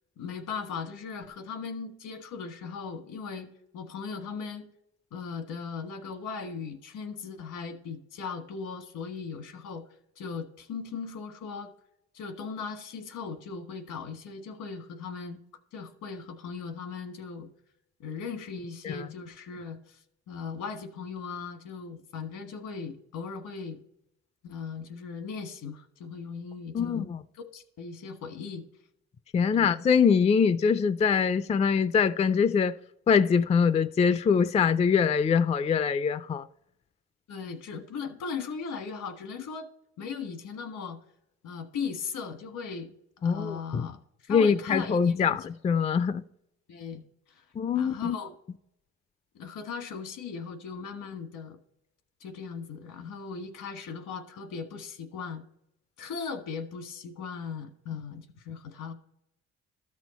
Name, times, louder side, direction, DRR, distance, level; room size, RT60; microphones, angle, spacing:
voice 1, 0.2-4.7 5.1-11.7 12.1-15.4 15.7-17.5 18.0-23.8 24.4-28.6 29.5-29.8 37.3-39.7 40.0-41.0 41.4-45.5 46.7-47.5 47.7-48.3 49.3-51.6 52.2-55.4 56.0-58.9, left 5 dB, 80° left, 1.4 m, -38 dB
voice 2, 26.7-27.2 29.3-32.7 33.1-36.5 43.2-43.9 44.3-46.2 47.6-48.2, left 6 dB, 25° left, 0.3 m, -24 dB
13.0 x 6.3 x 4.2 m
cardioid pair, 90°, 30 cm